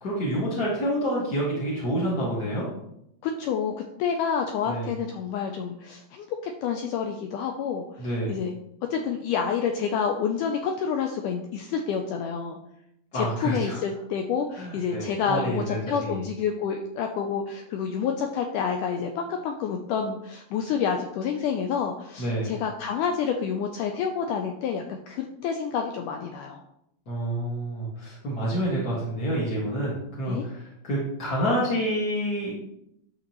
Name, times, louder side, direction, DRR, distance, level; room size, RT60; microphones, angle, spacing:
voice 1, 0.0-2.6 4.6-4.9 8.0-8.3 13.1-13.8 14.6-16.2 22.2-22.5 27.1-32.6, equal, 40° left, -6 dB, 1.5 m, -28 dB
voice 2, 3.2-3.7 4.0-8.5 8.9-12.6 13.1-26.6 30.3-30.4, left 7 dB, 80° left, 3 dB, 1.9 m, -28 dB
10.5 x 6.6 x 3.0 m, 0.78 s
omnidirectional pair, 4.2 m